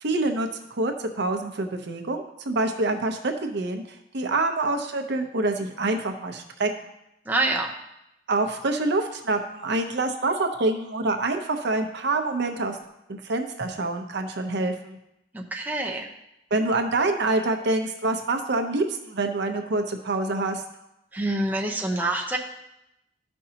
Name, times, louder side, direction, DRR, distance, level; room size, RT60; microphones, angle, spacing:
voice 1, 0.0-6.7 8.3-12.8 13.1-15.0 16.5-20.6, right 2 dB, 60° right, 5 dB, 0.8 m, -26 dB
voice 2, 7.3-7.7 15.3-16.1 21.1-22.4, right 2 dB, 10° right, 0 dB, 0.7 m, -26 dB
13.0 x 5.4 x 2.9 m, 0.86 s
head